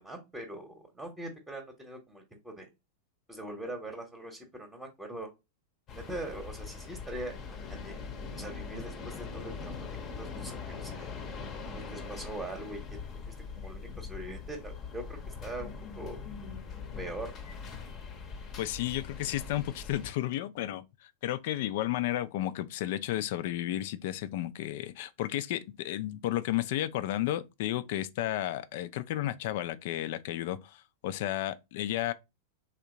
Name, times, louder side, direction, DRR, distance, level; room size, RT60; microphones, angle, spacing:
voice 1, 0.0-2.7 3.3-5.3 5.9-7.9 8.3-9.9 10.2-11.1 11.7-12.8 13.2-15.7 16.0-16.3 17.0-17.5, right 1 dB, 10° right, 0.9 m, -42 dB
sound 1, 5.9-20.1, left 5 dB, 30° left, 0.7 m, -42 dB
voice 2, 18.6-32.1, left 13 dB, 50° left, 0.3 m, -33 dB
3.5 x 2.8 x 3.6 m
figure-of-eight pair, 90°, 0 cm